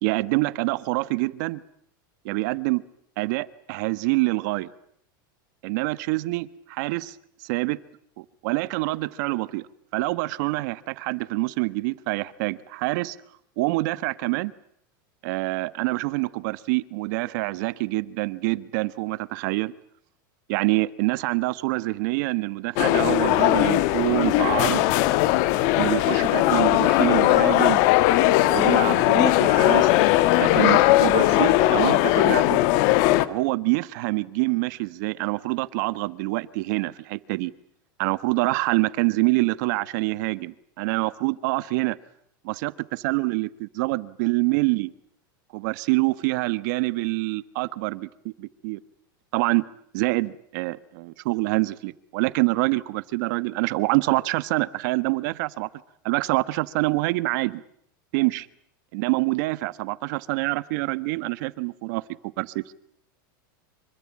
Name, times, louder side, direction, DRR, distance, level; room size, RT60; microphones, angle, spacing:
voice 1, 0.0-1.6 2.2-2.8 3.2-4.7 5.6-7.1 7.4-7.8 8.2-9.7 9.9-13.2 13.6-14.5 15.2-19.7 20.5-24.9 25.7-27.8 28.5-29.9 30.4-32.6 33.2-37.5 38.0-42.0 42.4-44.9 45.5-48.8 49.3-49.6 49.9-55.7 56.0-57.6 58.1-58.5 58.9-62.0 62.4-62.7, right 22 dB, 60° right, 1.3 m, -26 dB
sound 1, 22.8-33.3, left 16 dB, 50° left, 1.5 m, -19 dB
26.0 x 24.0 x 8.7 m
supercardioid pair, 150°, 11 cm